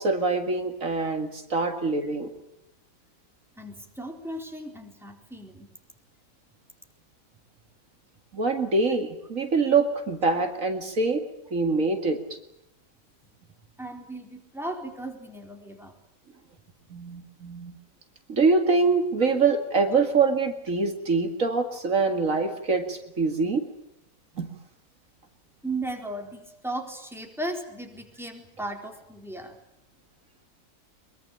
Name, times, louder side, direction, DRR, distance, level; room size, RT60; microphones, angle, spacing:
voice 1, 0.0-2.3 8.3-11.2 11.5-12.2 16.9-17.8 18.3-23.7 24.4-24.5, right 4 dB, 70° right, 6 dB, 2.6 m, -24 dB
voice 2, 3.6-5.7 13.8-15.9 25.6-29.6, right 1 dB, ahead, 2 dB, 4.1 m, -36 dB
23.0 x 23.0 x 8.7 m, 0.80 s
omnidirectional pair, 1.4 m